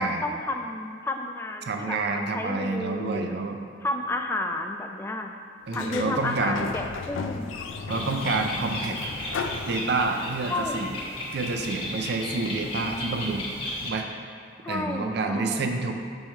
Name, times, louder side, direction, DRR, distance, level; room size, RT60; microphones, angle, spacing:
voice 1, 0.0-3.4 3.8-5.4 5.7-7.5 10.5-10.8 14.6-15.8, left 2 dB, 10° left, 4 dB, 0.3 m, -31 dB
voice 2, 1.7-3.6 5.7-6.6 7.9-9.0 9.7-10.9 11.3-13.5 13.8-14.2 14.7-15.9, right 3 dB, 60° right, 5 dB, 0.4 m, -28 dB
Sliding door, 5.7-10.4, left 4 dB, 85° left, 0.4 m, -35 dB
Bird, 7.9-13.9, left 1 dB, 30° left, 1.0 m, -34 dB
5.5 x 4.5 x 4.4 m, 2.3 s
head